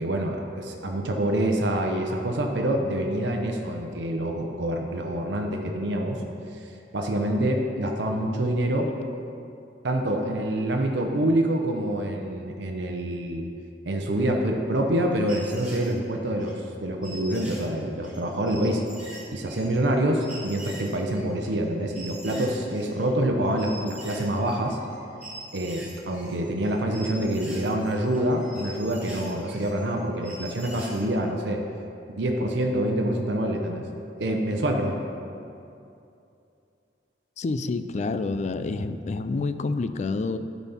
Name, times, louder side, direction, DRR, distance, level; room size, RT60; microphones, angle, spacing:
voice 1, 0.0-6.2 6.6-8.9 9.8-13.4 13.8-18.8 19.3-24.8 25.5-31.6 32.1-33.9 34.2-35.0, right 1 dB, 75° right, 2 dB, 0.7 m, -26 dB
sound 1, 14.7-16.5 17.0-23.1 23.4-25.0 25.2-31.0, right 1 dB, 5° right, 1.9 m, -44 dB
voice 2, 37.4-40.4, left 3 dB, 40° left, 11 dB, 0.3 m, -28 dB
10.5 x 4.2 x 5.6 m, 2.6 s
head